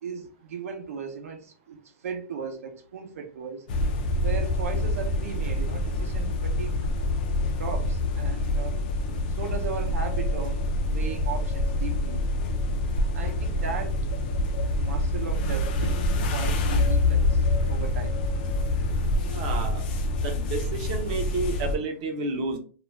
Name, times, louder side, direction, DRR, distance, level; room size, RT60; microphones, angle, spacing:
voice 1, 0.0-3.7 4.2-6.8 7.5-8.8 9.3-12.2 13.1-14.0 14.8-18.2, right 5 dB, 75° right, 0.6 m, -37 dB
sound 1, 3.7-21.8, left 1 dB, 35° left, 0.4 m, -26 dB
voice 2, 19.2-19.8 20.2-22.6, right 3 dB, 30° right, 0.5 m, -31 dB
2.4 x 2.1 x 3.0 m
hypercardioid pair, 175°, 8 cm